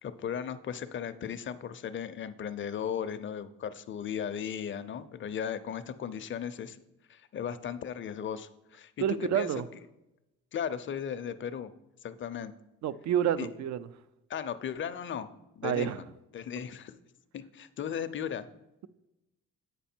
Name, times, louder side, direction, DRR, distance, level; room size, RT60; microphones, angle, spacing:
voice 1, 0.0-6.8 7.1-8.9 9.2-9.5 10.5-11.7 12.0-12.5 13.4-13.5 14.3-15.3 15.5-16.0 16.3-17.0 17.3-18.5, left 8 dB, 40° left, 0.5 m, -36 dB
voice 2, 9.0-9.6 12.8-13.9 15.6-16.0, right 10 dB, 65° right, 0.5 m, -29 dB
8.2 x 5.1 x 4.4 m
cardioid pair, 90°, 30 cm